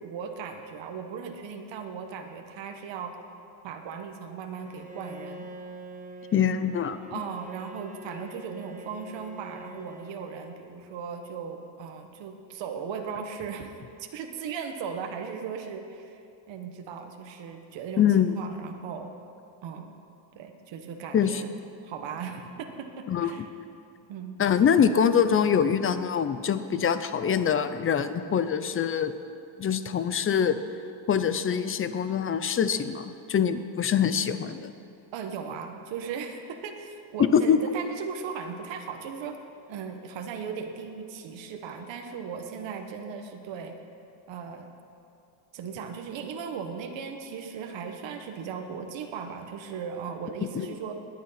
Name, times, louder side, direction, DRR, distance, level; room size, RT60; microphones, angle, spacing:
voice 1, 0.0-3.2 3.6-5.5 7.1-13.7 14.0-16.2 16.5-19.1 19.6-19.9 20.3-21.5 21.8-23.5 24.1-24.4 35.1-39.4 39.7-43.7 44.3-44.7 45.5-50.9, right 6 dB, 65° right, 4 dB, 1.4 m, -37 dB
Bowed string instrument, 4.6-10.9, right 1 dB, 15° right, 0.8 m, -45 dB
voice 2, 6.3-7.0 18.0-18.4 21.1-21.4 23.1-23.3 24.4-29.1 29.6-30.6 31.1-34.7 37.2-37.6 50.5-50.7, left 8 dB, 30° left, 12 dB, 0.4 m, -24 dB
20.0 x 9.2 x 5.7 m, 2.6 s
cardioid pair, 165°, 48 cm